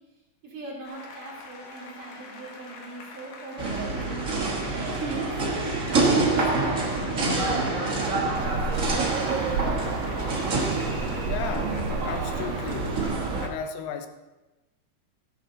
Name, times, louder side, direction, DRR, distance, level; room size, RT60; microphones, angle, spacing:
voice 1, 0.4-4.2 4.7-9.7, right 1 dB, 40° right, -3 dB, 3.6 m, -42 dB
Applause, 0.8-13.1, left 3 dB, 60° left, 2.5 m, -46 dB
sound 1, 3.6-13.5, right 3 dB, 75° right, 0.7 m, -27 dB
sound 2, 8.3-13.5, right 4 dB, 90° right, 2.8 m, -33 dB
voice 2, 11.2-13.0 13.4-14.1, left 6 dB, 85° left, 8 dB, 2.6 m, -35 dB
14.0 x 10.5 x 3.9 m, 1.1 s
omnidirectional pair, 4.0 m